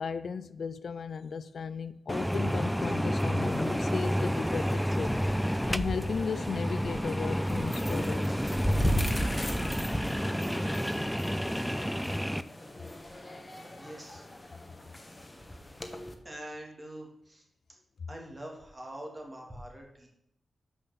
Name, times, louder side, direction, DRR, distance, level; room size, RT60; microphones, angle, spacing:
voice 1, 0.0-5.2 5.7-8.3, left 6 dB, 70° left, 0.3 m, -36 dB
sound 1, 2.1-12.4, equal, ahead, 0.4 m, -30 dB
sound 2, 3.4-16.1, equal, 20° left, 1.1 m, -37 dB
voice 2, 13.7-14.2 16.2-17.4 18.1-20.1, right 1 dB, 30° right, 2.6 m, -44 dB
6.1 x 5.3 x 6.8 m
cardioid pair, 50°, 0 cm